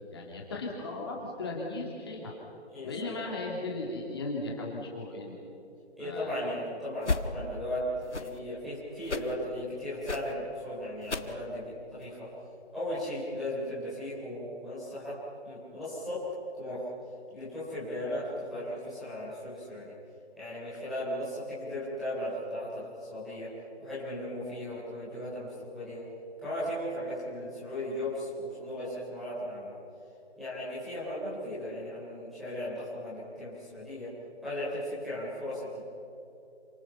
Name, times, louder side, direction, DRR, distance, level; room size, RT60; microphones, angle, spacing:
voice 1, 0.1-2.3 2.8-5.3 6.0-6.3, left 2 dB, 20° left, -2 dB, 2.8 m, -36 dB
voice 2, 2.7-3.3 6.0-12.3 12.7-16.3 16.5-16.9 17.3-19.9 20.3-26.1 26.4-29.7 30.4-35.8, left 1 dB, ahead, -12 dB, 3.6 m, -36 dB
sound 1, 7.0-7.3 8.0-8.4 9.0-9.3 10.0-10.3 11.0-11.3 12.0-12.1, left 3 dB, 90° left, 1.8 m, -33 dB
28.5 x 26.5 x 5.7 m, 2.9 s
figure-of-eight pair, 170°, 34 cm